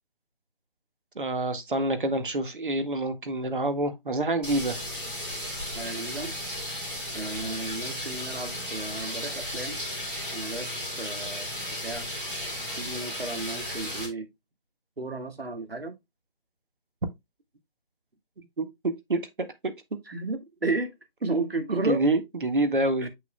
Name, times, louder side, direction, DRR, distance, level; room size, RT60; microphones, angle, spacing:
voice 1, 1.2-4.8 18.6-19.3 19.6-19.7 21.8-23.1, right 2 dB, 60° right, 1.8 m, -27 dB
sound 1, 4.4-14.1, left 1 dB, 5° right, 1.2 m, -34 dB
voice 2, 5.7-6.4 7.1-9.8 10.3-11.5 11.8-12.1 12.8-14.3 15.0-16.0 20.1-20.9 21.2-22.0 23.0-23.1, right 3 dB, 90° right, 2.2 m, -33 dB
7.6 x 6.8 x 2.2 m
figure-of-eight pair, 165°, 29 cm